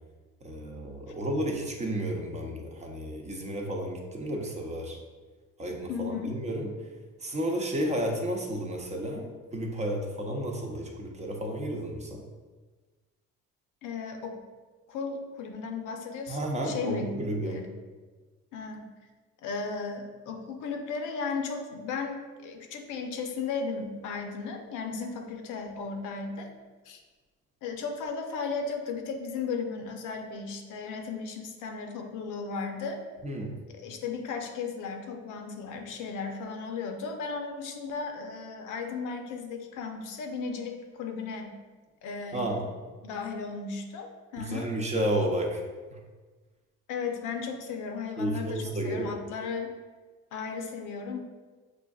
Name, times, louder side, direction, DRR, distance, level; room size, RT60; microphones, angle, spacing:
voice 1, 0.4-5.0 5.6-6.7 7.2-12.2 16.3-17.6 33.2-33.6 42.3-42.7 44.4-45.6 45.9-46.0 48.2-49.1, right 1 dB, 20° right, 1 dB, 0.6 m, -32 dB
voice 2, 5.9-6.4 13.8-14.4 14.9-17.2 17.4-17.7 18.5-18.9 19.4-26.5 26.9-27.0 27.6-33.0 33.8-41.6 42.0-42.5 43.0-44.1 44.3-44.7 46.9-49.7 50.3-51.2, left 5 dB, 75° left, 3 dB, 0.7 m, -35 dB
6.1 x 2.5 x 2.3 m, 1.3 s
cardioid pair, 100°, 31 cm